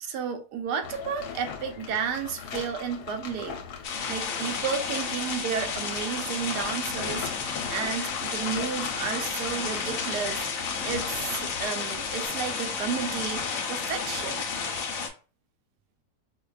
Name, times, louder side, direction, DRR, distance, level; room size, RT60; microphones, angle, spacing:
voice 1, 0.0-3.6 4.1-7.3 7.7-10.5 10.8-14.4, right 7 dB, 90° right, 1.2 m, -32 dB
sound 1, 0.8-12.3, left 7 dB, 85° left, 1.2 m, -40 dB
sound 2, 3.8-15.1, left 5 dB, 65° left, 1.0 m, -32 dB
4.8 x 2.2 x 2.3 m
omnidirectional pair, 1.7 m